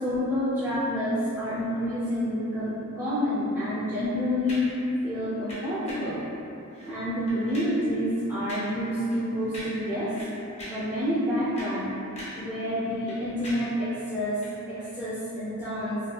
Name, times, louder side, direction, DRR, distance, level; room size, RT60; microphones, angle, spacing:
voice 1, 0.0-4.6 5.0-6.2 6.9-10.1 10.7-12.0 12.4-14.4 14.7-16.0, equal, 15° right, -14 dB, 0.5 m, -28 dB
sound 1, 4.5-4.8 5.5-6.2 6.7-7.0 7.3-7.8 8.5-8.8 9.1-9.2 9.5-9.9 10.2-10.9 11.4-12.5 12.8-13.8 14.4-14.6, equal, 30° left, 0.6 m, -41 dB
2.8 x 2.2 x 2.3 m, 2.8 s
head